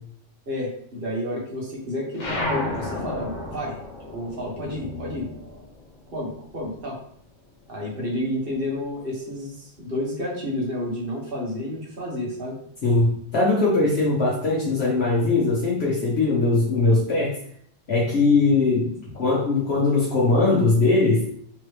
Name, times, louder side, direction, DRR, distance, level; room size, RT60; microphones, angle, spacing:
voice 1, 0.5-3.8 4.0-5.3 6.1-7.0 7.7-12.6, left 1 dB, 55° right, -4 dB, 1.5 m, -30 dB
sound 1, 2.1-7.0 7.3-8.8, left 2 dB, 85° left, 1.4 m, -33 dB
voice 2, 12.8-17.4 17.9-18.9 19.2-21.3, left 3 dB, 65° left, -6 dB, 1.2 m, -20 dB
3.7 x 3.2 x 3.2 m, 0.65 s
omnidirectional pair, 1.2 m